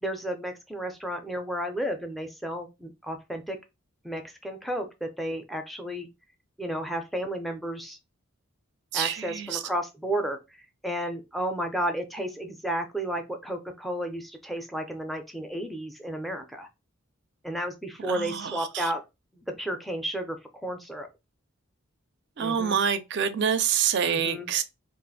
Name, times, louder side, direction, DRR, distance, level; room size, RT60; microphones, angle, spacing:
voice 1, 0.0-3.6 4.0-6.1 6.6-8.0 8.9-10.4 10.8-16.7 17.4-19.0 19.3-20.4 20.6-21.1 22.4-22.8 24.1-24.5, right 1 dB, ahead, 0.4 m, -32 dB
voice 2, 8.9-9.6 18.1-18.9 22.4-24.6, right 7 dB, 55° right, 0.4 m, -27 dB
2.5 x 2.4 x 3.9 m
head